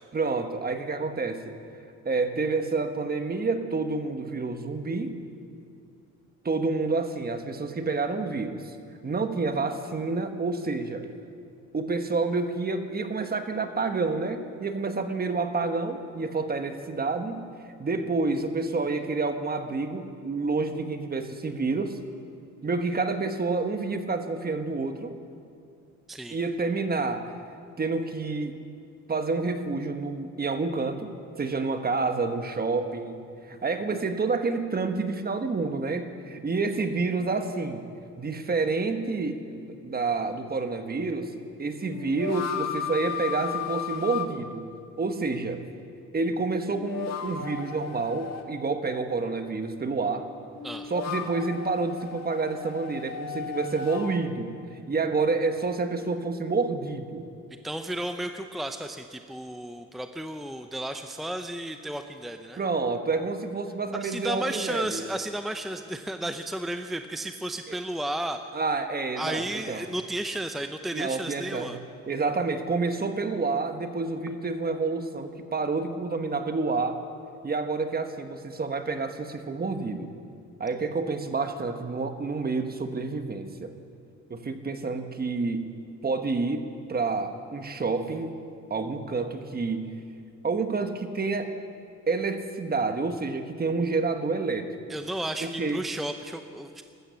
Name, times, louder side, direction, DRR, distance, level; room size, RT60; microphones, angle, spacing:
voice 1, 0.1-1.5 2.0-5.2 6.4-8.7 9.0-11.1 11.7-17.5 17.8-22.0 22.6-25.1 26.3-27.4 27.8-28.5 29.1-37.9 38.2-41.3 41.6-44.7 45.0-45.6 46.1-50.3 50.9-57.3 62.6-65.0 67.7-67.8 68.5-69.9 70.9-71.8 72.1-77.0 77.4-80.1 80.6-83.7 84.3-85.7 86.0-88.4 88.7-89.9 90.4-91.5 92.1-94.8 95.4-95.9, right 3 dB, 30° right, 7 dB, 1.3 m, -29 dB
sound 1, 39.7-39.8 41.8-44.3 46.7-48.5 50.5-54.2, left 8 dB, 60° left, 1.5 m, -35 dB
voice 2, 57.6-62.6 64.0-68.4 69.2-71.8 94.9-96.8, right 1 dB, ahead, 7 dB, 0.6 m, -33 dB
15.0 x 12.5 x 7.0 m, 2.5 s
cardioid pair, 90°, 30 cm